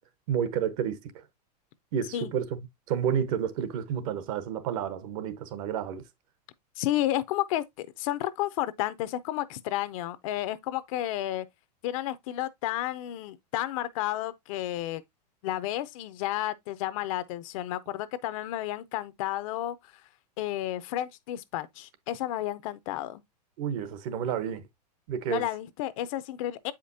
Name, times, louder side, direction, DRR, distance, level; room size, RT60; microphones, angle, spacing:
voice 1, 0.3-1.0 1.9-6.0 23.6-24.6 25.1-25.4, right 8 dB, 55° right, 1.0 m, -30 dB
voice 2, 6.8-11.5 11.8-15.0 15.4-19.8 20.4-23.2 25.3-26.7, left 14 dB, 55° left, 0.6 m, -31 dB
7.6 x 5.1 x 2.6 m
supercardioid pair, 135°, 21 cm